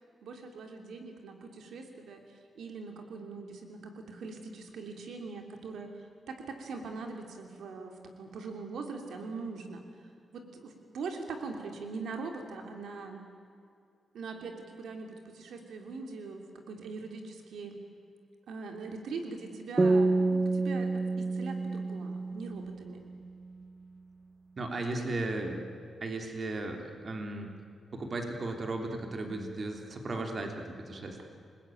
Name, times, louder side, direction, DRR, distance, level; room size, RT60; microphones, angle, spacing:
voice 1, 0.2-2.2 2.5-13.2 14.1-17.8 18.5-23.0, right 4 dB, 85° right, 3 dB, 3.1 m, -42 dB
sound 1, 19.8-23.2, right 3 dB, 25° right, 1.2 m, -28 dB
voice 2, 24.6-25.7 26.0-27.5 27.9-31.2, right 2 dB, 40° right, 3 dB, 3.2 m, -36 dB
29.0 x 20.0 x 9.2 m, 2.4 s
cardioid pair, 110°, 0 cm